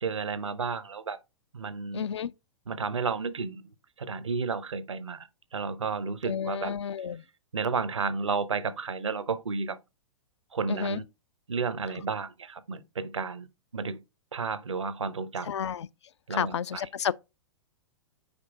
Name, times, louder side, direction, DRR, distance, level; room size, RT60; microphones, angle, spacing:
voice 1, 0.0-1.2 1.5-2.0 2.7-3.6 4.0-6.7 7.5-9.8 10.5-11.0 11.5-13.5 13.7-14.0 14.3-15.5 16.3-16.9, right 4 dB, 75° right, 0.7 m, -32 dB
voice 2, 1.9-2.3 6.3-7.2 10.7-11.0 15.5-15.9 16.3-17.1, left 8 dB, 65° left, 0.4 m, -31 dB
5.2 x 4.8 x 4.6 m
figure-of-eight pair, 110°, 16 cm